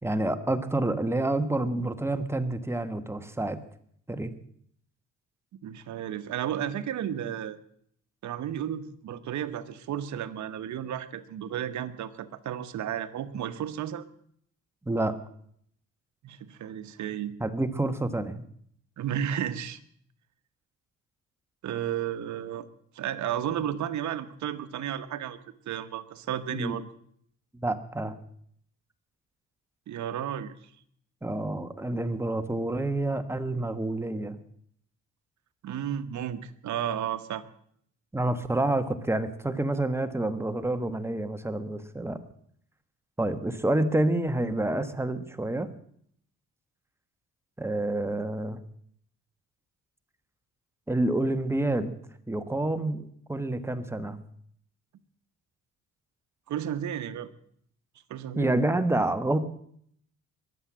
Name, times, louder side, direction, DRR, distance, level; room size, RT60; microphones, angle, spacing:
voice 1, 0.0-3.6 4.1-4.3 14.9-15.1 17.4-18.4 26.5-26.8 27.6-28.2 31.2-34.3 38.1-42.2 43.2-45.7 47.6-48.6 50.9-51.9 52.3-54.2 58.3-59.4, right 2 dB, 10° right, 9 dB, 1.4 m, -28 dB
voice 2, 5.6-7.6 8.2-14.1 16.2-17.3 19.0-19.8 21.6-22.7 22.9-25.4 25.7-26.8 29.9-30.5 35.6-37.4 56.5-57.3 58.1-58.5, right 10 dB, 70° right, 11 dB, 1.2 m, -33 dB
22.0 x 7.9 x 7.5 m, 0.65 s
cardioid pair, 90°, 30 cm